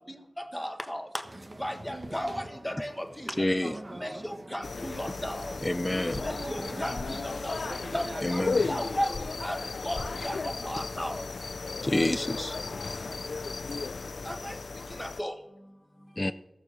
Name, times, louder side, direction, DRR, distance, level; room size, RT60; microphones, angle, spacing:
voice 1, 0.4-1.1 1.6-3.5 3.9-5.5 6.1-7.6 7.9-11.2 14.2-14.6 14.9-15.3, equal, 10° left, 1.4 m, -35 dB
sound 1, 1.2-8.9, right 1 dB, 40° right, 1.3 m, -43 dB
voice 2, 3.4-3.8 5.6-6.3 8.2-8.7 11.8-12.6 16.2-16.3, left 1 dB, 25° left, 0.4 m, -28 dB
voice 3, 4.1-4.7 12.6-13.2 13.6-14.4 16.1-16.3, right 2 dB, 55° right, 2.2 m, -55 dB
sound 2, 4.6-15.2, left 4 dB, 90° left, 0.4 m, -35 dB
sound 3, 6.1-6.2 6.9-7.1 9.1-9.2 9.9-10.1, left 2 dB, 50° left, 0.9 m, -38 dB
14.5 x 6.8 x 6.5 m
wide cardioid pair, 60°, 0 cm